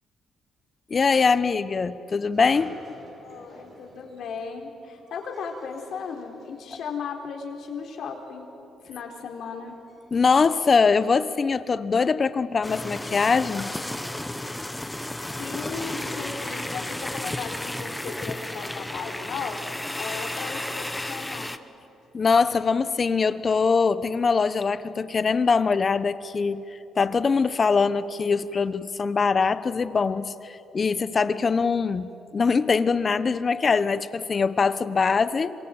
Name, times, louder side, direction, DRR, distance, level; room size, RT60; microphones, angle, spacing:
voice 1, 0.9-2.7 10.1-13.7 22.1-26.6 27.0-35.5, left 5 dB, 40° left, 14 dB, 1.1 m, -22 dB
sound 1, 2.3-7.1 7.4-8.4 8.7-9.0 9.5-11.5 11.8-11.9 12.1-12.2 12.5-12.9 13.8-13.9 14.7-15.1, right 2 dB, 40° right, 4.8 m, -52 dB
voice 2, 3.2-8.5 8.8-9.8 15.4-21.5, left 5 dB, 70° left, 3 dB, 4.1 m, -36 dB
sound 2, 12.6-21.6, left 1 dB, 10° left, 1.1 m, -33 dB
26.5 x 23.5 x 9.2 m, 2.9 s
cardioid pair, 90°, 0 cm